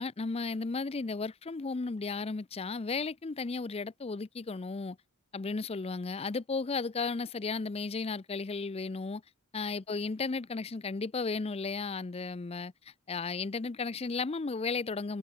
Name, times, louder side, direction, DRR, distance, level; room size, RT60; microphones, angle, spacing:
voice 1, 0.0-5.0 5.3-9.2 9.5-12.7 13.1-15.2, left 4 dB, 25° left, 0.5 m, -34 dB
head